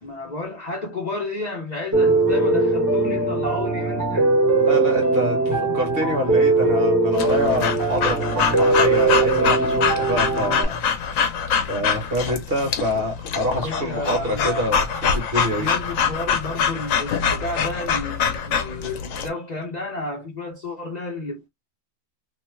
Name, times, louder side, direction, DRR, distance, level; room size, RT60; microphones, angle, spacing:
voice 1, 0.0-4.3 5.5-5.8 13.5-14.6 15.5-21.5, left 2 dB, 40° left, 0.8 m, -32 dB
Piano, 1.9-10.6, right 2 dB, 15° right, 0.9 m, -20 dB
voice 2, 4.6-11.3 11.7-15.7, equal, 50° right, 1.3 m, -26 dB
Breathing / Dog, 7.2-19.3, left 6 dB, 90° left, 1.0 m, -24 dB
2.8 x 2.2 x 3.1 m
omnidirectional pair, 1.3 m